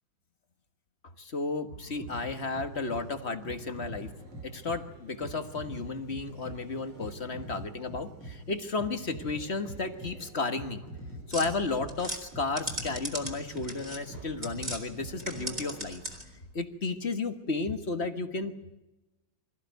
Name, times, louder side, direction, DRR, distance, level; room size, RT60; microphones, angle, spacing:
voice 1, 1.2-4.1 4.4-10.8 11.3-16.0 16.5-18.6, left 3 dB, 35° left, 8 dB, 1.5 m, -33 dB
sound 1, 1.7-15.8, right 1 dB, 75° right, 4.9 m, -45 dB
sound 2, 11.3-14.8 15.1-16.4, right 1 dB, 20° right, 3.9 m, -38 dB
25.0 x 15.0 x 9.2 m, 1.0 s
omnidirectional pair, 2.2 m